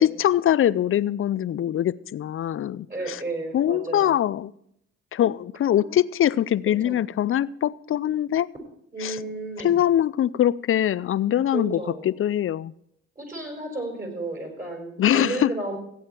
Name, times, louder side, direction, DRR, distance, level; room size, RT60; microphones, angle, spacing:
voice 1, 0.0-3.2 3.5-4.5 5.1-8.5 9.0-9.2 9.6-12.7 15.0-15.5, left 11 dB, 45° left, 0.5 m, -23 dB
voice 2, 2.9-4.2 5.7-6.0 6.8-7.0 8.9-9.8 11.5-12.1 13.2-15.8, right 2 dB, 30° right, 5.1 m, -33 dB
16.0 x 8.6 x 4.5 m
supercardioid pair, 70°, 30 cm